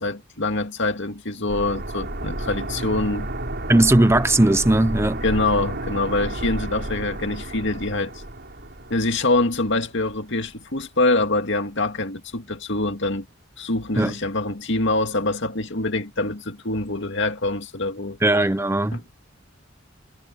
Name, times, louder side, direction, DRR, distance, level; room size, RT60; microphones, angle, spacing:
voice 1, 0.0-3.3 5.2-8.1 8.9-13.3 13.6-18.2 18.9-19.2, left 2 dB, 65° left, 2.2 m, -25 dB
sound 1, 1.5-10.2 10.5-10.6, right 1 dB, 55° right, 7.3 m, -32 dB
voice 2, 3.7-5.2 14.0-14.1 18.2-19.0, right 1 dB, 15° right, 0.8 m, -18 dB
head